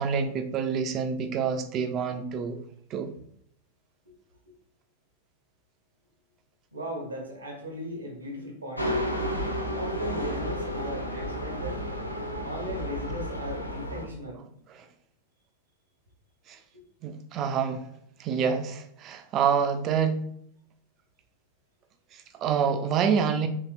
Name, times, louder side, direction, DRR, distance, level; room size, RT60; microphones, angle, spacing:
voice 1, 0.0-2.6 2.9-3.1 14.7-14.9 16.5-16.6 17.0-17.8 18.2-20.2 22.1-23.5, right 6 dB, 35° right, 8 dB, 0.3 m, -27 dB
voice 2, 6.7-9.0 9.7-11.9 12.4-14.4 16.7-16.8, equal, 80° right, 0 dB, 0.7 m, -37 dB
sound 1, 8.8-14.1, equal, 85° left, 0.4 m, -32 dB
2.9 x 2.8 x 2.4 m, 0.69 s
figure-of-eight pair, 90°, 0 cm